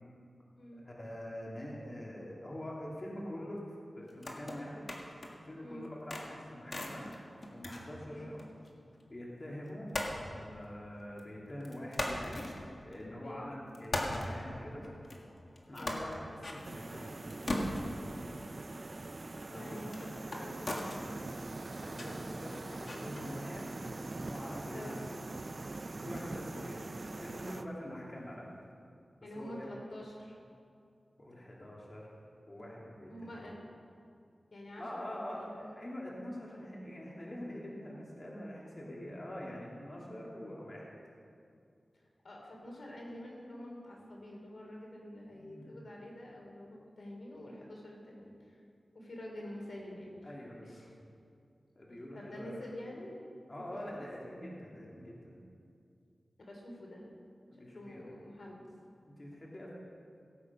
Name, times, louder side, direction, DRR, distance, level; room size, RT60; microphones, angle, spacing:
voice 1, 0.7-3.6 4.0-7.1 7.5-8.4 9.1-14.9 15.7-17.2 19.5-19.8 21.8-23.7 23.9-25.3 25.9-28.5 29.3-29.7 31.2-32.1 32.5-33.3 34.8-40.9 45.3-45.8 50.2-50.8 51.7-52.6 53.5-55.4 57.5-58.1 59.0-59.7, equal, 40° left, -4 dB, 2.6 m, -45 dB
sound 1, 4.0-5.5 5.8-8.7 8.9-9.0 9.9-11.3 11.6-13.3 13.7-23.6, left 1 dB, 55° left, 1.8 m, -41 dB
sound 2, 16.6-27.7, right 2 dB, 50° right, 0.6 m, -43 dB
voice 2, 19.5-21.4 21.8-22.0 22.7-22.8 24.7-25.0 26.5-26.7 29.2-30.4 33.1-33.6 34.5-35.6 42.2-48.6 48.9-50.1 50.6-50.9 52.1-53.2 53.5-54.0 56.4-57.0 57.5-58.6, left 1 dB, 75° left, -1 dB, 3.0 m, -47 dB
17.5 x 8.5 x 5.5 m, 2.4 s
wide cardioid pair, 65°, 0 cm